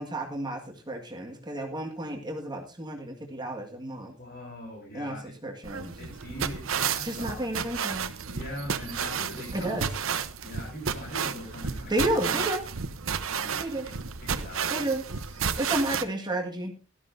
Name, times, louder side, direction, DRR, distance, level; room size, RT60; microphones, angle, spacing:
voice 1, 0.0-4.1 4.9-5.9 7.0-8.1 9.5-9.9 11.9-12.7 13.6-13.9 14.7-15.0 15.6-16.7, right 1 dB, 20° right, 1 dB, 1.8 m, -31 dB
voice 2, 4.2-5.3 6.0-7.3 8.3-9.9 10.4-12.4 13.2-13.6 14.2-15.0 15.3-15.7, equal, 50° left, -3 dB, 6.8 m, -41 dB
sound 1, 5.6-16.0, right 6 dB, 75° right, 0.9 m, -32 dB
17.5 x 12.5 x 2.7 m, 0.32 s
head